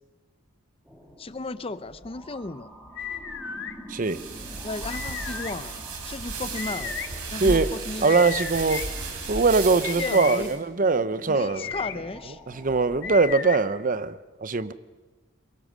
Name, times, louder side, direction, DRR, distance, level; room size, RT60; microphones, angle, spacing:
sound 1, 0.9-13.4, equal, 5° right, 2.7 m, -47 dB
voice 1, 1.2-2.7 4.6-7.0 7.3-8.3 10.0-10.5 11.3-12.4, left 3 dB, 25° left, 0.6 m, -35 dB
sound 2, 3.0-3.7 4.9-5.5 6.6-7.1 8.0-8.9 9.8-10.4 11.4-11.9 13.0-13.6, left 7 dB, 55° left, 1.5 m, -34 dB
voice 2, 3.9-4.2 7.4-7.7 8.0-8.8 9.3-11.7 12.5-14.7, right 4 dB, 40° right, 0.6 m, -22 dB
sound 3, 4.0-10.6, right 3 dB, 90° right, 3.5 m, -34 dB
23.5 x 22.0 x 6.3 m
head